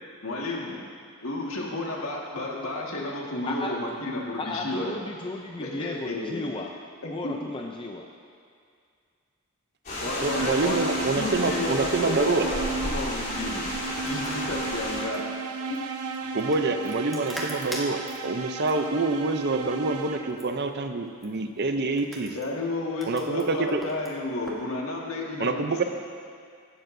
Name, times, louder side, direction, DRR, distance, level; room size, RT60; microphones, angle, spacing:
voice 1, 0.2-0.8 1.2-5.0 5.6-6.4 7.0-7.3 10.0-13.7 14.0-15.3 15.7-15.8 22.4-25.8, left 2 dB, 70° left, -2 dB, 1.8 m, -32 dB
voice 2, 3.5-3.8 4.4-6.7 7.1-8.1, left 2 dB, 20° left, 1 dB, 0.5 m, -34 dB
sound 1, 9.8-15.0, left 1 dB, 40° left, 3.4 m, -33 dB
voice 3, 10.2-12.4 16.3-22.4 23.1-23.8 25.4-25.8, right 3 dB, 45° right, 7 dB, 0.6 m, -26 dB
sound 2, 10.2-20.6, right 4 dB, 85° right, 0.7 m, -34 dB
sound 3, 13.6-24.7, equal, ahead, 1.3 m, -44 dB
15.5 x 12.0 x 2.7 m, 2.2 s
head